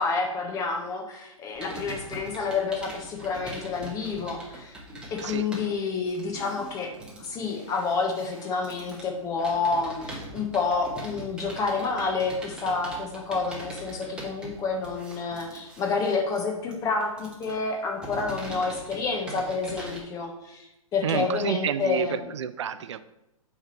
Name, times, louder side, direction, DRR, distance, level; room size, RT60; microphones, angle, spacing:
voice 1, 0.0-4.7 5.1-6.9 7.2-22.3, left 4 dB, 20° left, 2 dB, 1.2 m, -29 dB
Computer keyboard, 1.6-20.0, right 1 dB, 5° right, 1.2 m, -42 dB
voice 2, 21.0-23.0, right 8 dB, 55° right, 13 dB, 0.5 m, -29 dB
8.7 x 3.6 x 4.5 m, 0.89 s
figure-of-eight pair, 125°, 18 cm